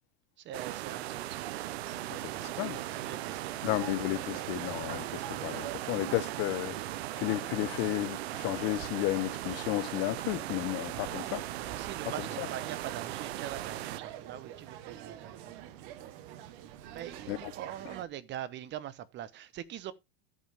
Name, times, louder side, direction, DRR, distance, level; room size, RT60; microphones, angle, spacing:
voice 1, 0.4-1.5 1.9-3.9 11.0-11.4 11.7-16.1 16.9-19.9, right 11 dB, 35° right, 0.9 m, -43 dB
sound 1, 0.5-14.0, right 15 dB, 85° right, 0.6 m, -38 dB
sound 2, 1.3-18.0, right 11 dB, 60° right, 1.2 m, -46 dB
voice 2, 3.6-6.8 7.2-11.4 12.4-12.5 17.3-17.5, left 19 dB, 50° left, 0.7 m, -33 dB
14.0 x 5.4 x 3.4 m
supercardioid pair, 115°, 31 cm